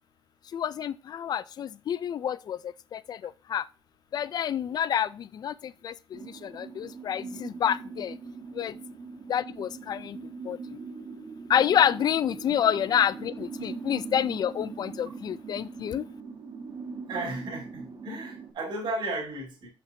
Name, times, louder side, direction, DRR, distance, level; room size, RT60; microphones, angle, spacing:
voice 1, 0.5-3.7 4.1-8.2 8.5-8.7 9.3-10.2 10.4-10.8 11.5-16.0, left 9 dB, 50° left, 0.4 m, -28 dB
sound 1, 6.1-18.5, right 4 dB, 45° right, 1.4 m, -41 dB
voice 2, 17.1-19.7, right 2 dB, 60° right, 2.6 m, -34 dB
6.6 x 5.8 x 2.8 m
wide cardioid pair, 170°, 9 cm